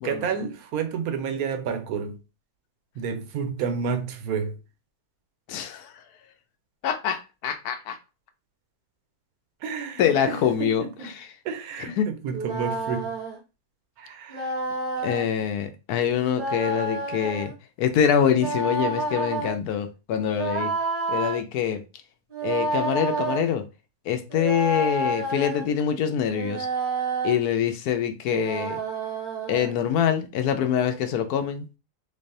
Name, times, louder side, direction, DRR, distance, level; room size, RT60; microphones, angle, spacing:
voice 1, 0.0-2.2 2.9-4.6 9.6-11.2 11.4-13.2 14.0-14.5, right 6 dB, 75° right, 1.1 m, -30 dB
voice 2, 5.5-6.0 6.8-8.0 10.0-10.8 11.1-11.3 12.0-12.1 15.0-17.5 17.8-20.7 21.1-21.8 22.4-23.6 24.1-26.7 27.2-28.8 29.5-31.7, left 8 dB, 85° left, 1.1 m, -25 dB
sound 1, 12.3-13.4 14.3-15.3 16.3-17.5 18.3-19.6 20.3-21.4 22.3-23.4 24.3-25.7 26.3-27.4 28.3-29.7, right 3 dB, 40° right, 1.0 m, -29 dB
3.9 x 3.3 x 2.6 m
omnidirectional pair, 1.6 m